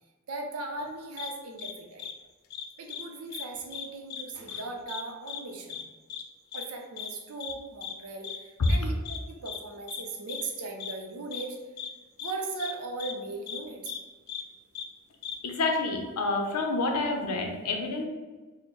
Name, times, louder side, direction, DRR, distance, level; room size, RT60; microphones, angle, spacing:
voice 1, 0.3-2.1 2.8-5.8 6.5-11.6 12.2-14.0, right 3 dB, 70° right, 2 dB, 0.6 m, -38 dB
sound 1, 1.2-1.3 1.6-1.7 2.0-2.1 2.5-3.0 3.3-3.4 3.7-4.2 4.5-4.6 4.9-5.0 5.3-5.4 5.7-5.8 6.1-6.2 6.5-6.6 7.0-7.1 7.4-7.5 7.8-7.9 8.2-8.4 8.6-8.8 9.0-9.2 9.4-9.6 9.9-10.0 10.3-10.4 10.8-10.9 11.3-11.4 11.8-11.9 12.2-12.3 12.6-12.7 13.0-13.1 13.5-13.6 13.9-14.0 14.3-14.4 14.7-14.9 15.2-15.3, left 8 dB, 45° left, 0.3 m, -37 dB
voice 2, 15.4-18.1, left 3 dB, 90° left, 3 dB, 0.6 m, -28 dB
4.2 x 2.1 x 3.1 m, 1.3 s
head